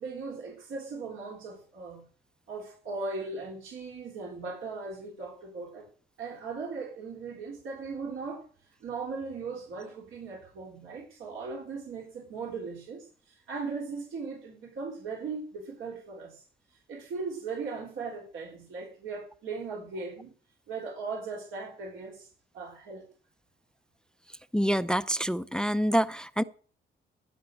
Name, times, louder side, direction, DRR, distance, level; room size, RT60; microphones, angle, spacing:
voice 1, 0.0-2.0 2.5-5.9 6.2-8.4 8.8-16.4 16.9-20.3 20.7-22.3 22.5-23.0, right 4 dB, 80° right, 3.7 m, -38 dB
voice 2, 24.5-26.4, equal, 5° left, 0.5 m, -26 dB
16.0 x 5.8 x 7.5 m
cardioid pair, 90°, 20 cm